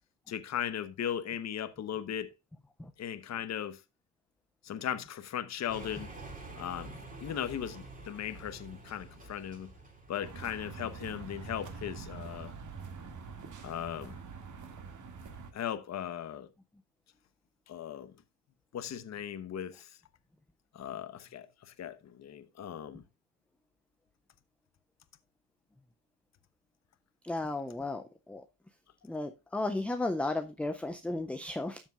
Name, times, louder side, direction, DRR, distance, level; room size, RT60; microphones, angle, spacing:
voice 1, 0.3-2.3 3.0-3.8 4.6-6.1 6.6-6.9 7.2-9.7 10.1-12.5 13.6-14.2 15.5-16.5 17.7-18.1 18.7-19.9 20.7-23.0, left 9 dB, 35° left, 1.1 m, -37 dB
sound 1, 5.7-11.4, right 2 dB, 15° right, 3.0 m, -48 dB
sound 2, 10.2-15.5, right 5 dB, 35° right, 2.2 m, -45 dB
voice 2, 27.3-28.0 28.3-28.4 29.1-31.8, left 2 dB, 5° left, 0.3 m, -34 dB
13.0 x 7.3 x 2.4 m
cardioid pair, 120°, 49 cm